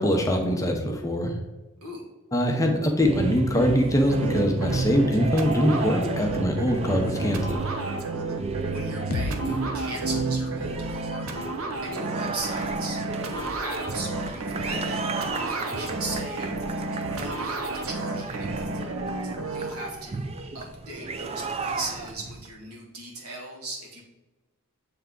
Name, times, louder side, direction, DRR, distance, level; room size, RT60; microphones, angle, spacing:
voice 1, 0.0-1.3 2.3-7.6, equal, 15° left, 2 dB, 0.7 m, -23 dB
sound 1, 2.9-22.5, right 3 dB, 30° right, 0.4 m, -33 dB
sound 2, 4.1-19.7, right 2 dB, 70° right, 0.8 m, -32 dB
voice 2, 8.7-11.3 11.8-24.0, right 2 dB, 85° right, -1 dB, 1.8 m, -38 dB
sound 3, 9.1-13.0, left 4 dB, 40° left, 0.3 m, -38 dB
7.8 x 3.4 x 3.8 m, 1.1 s
head